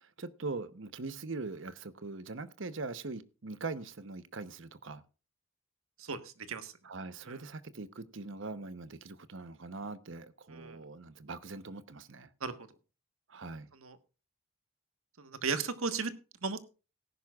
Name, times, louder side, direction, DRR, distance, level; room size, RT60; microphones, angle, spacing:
voice 1, 0.0-5.0 6.8-12.3 13.3-13.7, right 3 dB, 65° right, 0.9 m, -42 dB
voice 2, 6.0-6.7 7.2-7.4 10.5-10.8 12.4-12.5 13.8-14.0 15.2-16.1 16.4-16.6, right 4 dB, 85° right, 1.4 m, -35 dB
18.0 x 10.5 x 2.4 m
head